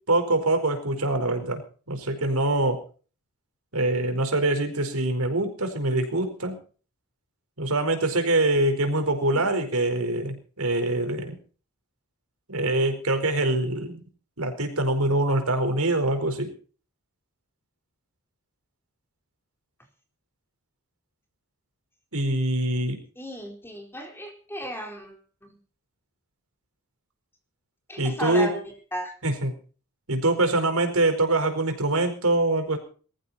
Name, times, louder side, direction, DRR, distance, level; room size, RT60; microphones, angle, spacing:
voice 1, 0.1-1.6 1.9-2.8 3.7-6.6 7.6-11.4 12.5-14.0 14.4-16.5 22.1-23.0 28.0-28.5 29.2-29.5 30.1-32.8, right 2 dB, 70° right, 6 dB, 4.7 m, -24 dB
voice 2, 23.2-25.6 27.9-29.1, right 1 dB, 10° left, 3 dB, 4.4 m, -35 dB
21.5 x 14.5 x 4.2 m, 0.40 s
head